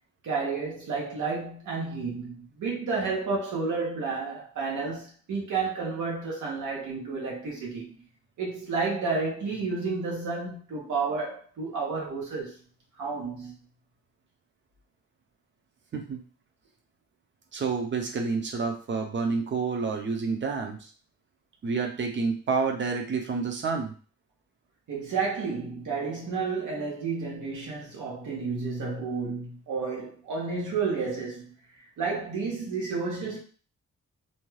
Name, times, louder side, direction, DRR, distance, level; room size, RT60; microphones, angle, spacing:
voice 1, 0.2-8.0 8.4-12.6 13.0-13.5 24.9-31.5 32.0-33.4, right 4 dB, 85° right, 0.9 m, -31 dB
voice 2, 17.5-20.9 21.6-23.9, right 4 dB, 40° right, 0.5 m, -29 dB
2.7 x 2.2 x 3.1 m
wide cardioid pair, 165°, 30 cm